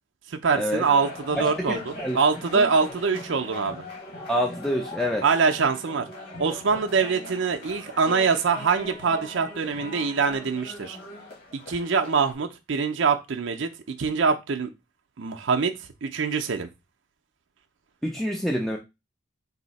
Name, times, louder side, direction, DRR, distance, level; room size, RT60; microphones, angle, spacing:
voice 1, 0.3-3.8 5.2-6.0 6.4-11.0 11.5-13.7 14.0-14.7 15.2-15.7 16.0-16.7, right 5 dB, 60° right, 0.5 m, -24 dB
sound 1, 0.8-12.3, left 1 dB, 45° left, 1.5 m, -39 dB
voice 2, 1.6-2.2 4.3-5.2 18.0-18.8, equal, ahead, 0.4 m, -27 dB
4.1 x 2.7 x 4.0 m
head